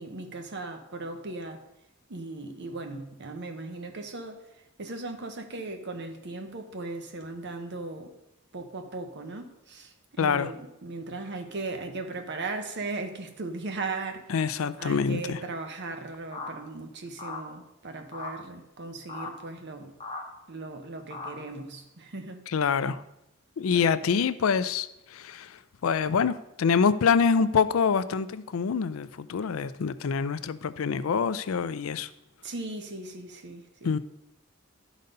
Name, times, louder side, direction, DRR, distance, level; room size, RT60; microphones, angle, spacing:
voice 1, 0.0-1.6 2.1-4.4 4.8-8.1 8.5-14.3 14.8-19.9 20.5-22.4 23.7-24.1 32.4-34.0, right 3 dB, 55° right, 1.0 m, -37 dB
voice 2, 10.2-10.5 14.3-15.4 22.5-23.0 23.6-32.1 33.8-34.0, left 6 dB, 75° left, 0.4 m, -26 dB
sound 1, 16.3-16.5 17.2-17.4 18.1-18.3 19.1-19.3 20.0-20.2 21.1-21.3, left 3 dB, 25° left, 1.3 m, -37 dB
11.5 x 4.1 x 5.3 m
head